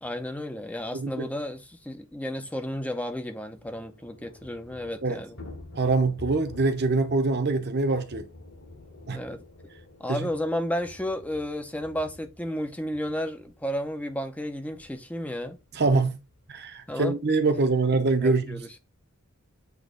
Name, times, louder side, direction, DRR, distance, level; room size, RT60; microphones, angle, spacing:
voice 1, 0.0-5.4 9.1-9.4 10.0-15.6 16.9-17.2 18.2-18.8, left 1 dB, 5° left, 0.6 m, -32 dB
voice 2, 0.9-1.2 5.0-5.2 5.7-8.3 9.1-9.2 10.1-10.2 15.7-16.2 16.5-18.6, right 3 dB, 50° right, 0.9 m, -24 dB
Thunder / Rain, 1.8-17.7, left 2 dB, 70° left, 4.2 m, -50 dB
8.2 x 3.1 x 3.8 m
head